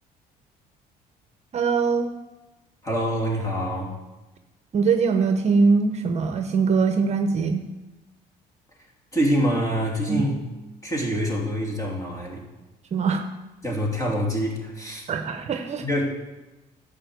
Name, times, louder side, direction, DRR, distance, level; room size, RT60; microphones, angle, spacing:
voice 1, 1.5-2.1 4.7-7.6 10.1-10.3 12.9-13.2 15.1-15.8, right 5 dB, 40° right, 7 dB, 0.9 m, -22 dB
voice 2, 2.8-4.0 9.1-10.3 10.8-12.4 13.6-15.1 15.8-16.1, equal, 20° left, -2 dB, 3.0 m, -25 dB
11.0 x 5.1 x 8.0 m, 1.1 s
cardioid pair, 110°, 17 cm